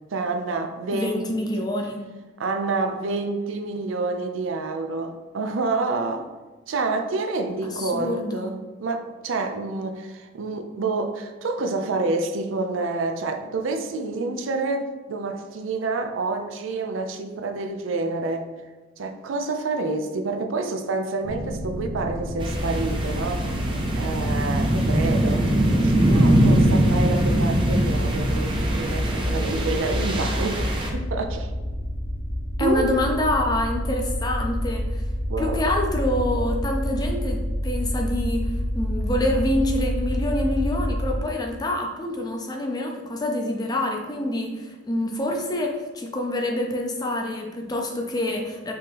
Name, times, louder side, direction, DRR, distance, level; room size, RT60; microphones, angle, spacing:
voice 1, 0.1-1.3 1.6-1.7 2.4-6.3 6.7-18.5 19.0-23.5 24.0-25.5 25.8-31.5 32.6-32.9 35.3-35.7, right 3 dB, 90° right, 0.5 m, -28 dB
voice 2, 0.9-2.0 7.7-8.5 32.6-35.0 35.4-48.7, left 1 dB, 20° left, 0.5 m, -26 dB
sound 1, 21.2-41.2, equal, 65° right, 0.9 m, -29 dB
sound 2, 22.4-30.9, right 1 dB, 25° right, 0.5 m, -22 dB
5.3 x 2.8 x 3.4 m
head